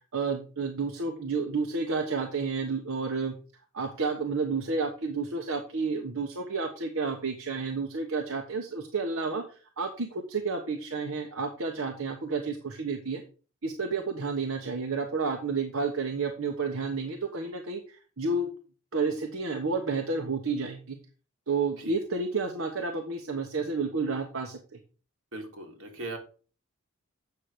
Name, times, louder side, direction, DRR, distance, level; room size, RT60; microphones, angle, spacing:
voice 1, 0.1-3.3 3.7-13.2 13.6-18.5 18.9-21.0 21.5-24.6, right 4 dB, 85° right, 3 dB, 1.3 m, -31 dB
voice 2, 25.3-26.2, right 2 dB, 65° right, 1 dB, 3.1 m, -39 dB
8.5 x 5.9 x 5.0 m, 0.37 s
head